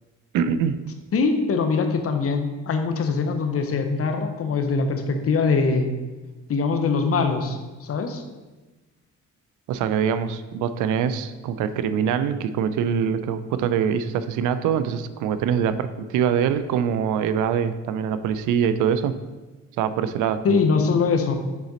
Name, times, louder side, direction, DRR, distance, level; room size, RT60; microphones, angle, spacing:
voice 1, 0.3-0.9 9.7-19.2 19.8-20.6, right 8 dB, 90° right, 12 dB, 0.5 m, -24 dB
voice 2, 1.1-5.9 6.5-8.2 20.4-21.4, left 4 dB, 50° left, 6 dB, 0.8 m, -22 dB
7.1 x 4.1 x 4.0 m, 1.2 s
cardioid pair, 90°, 30 cm